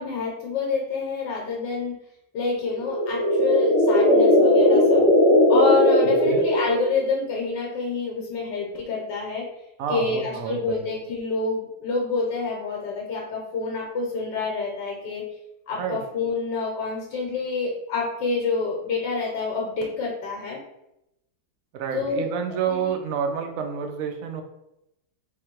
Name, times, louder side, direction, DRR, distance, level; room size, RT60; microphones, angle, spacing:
voice 1, 0.0-2.0 2.3-5.1 5.5-9.5 9.9-15.2 15.7-20.6 21.9-22.3 22.7-22.9, left 4 dB, 70° left, -1 dB, 1.4 m, -27 dB
sound 1, 2.7-7.1, left 1 dB, 20° left, 0.4 m, -18 dB
voice 2, 9.8-10.8 15.8-16.0 21.7-24.4, right 7 dB, 70° right, 5 dB, 0.8 m, -29 dB
3.6 x 3.1 x 4.4 m, 0.85 s
omnidirectional pair, 2.0 m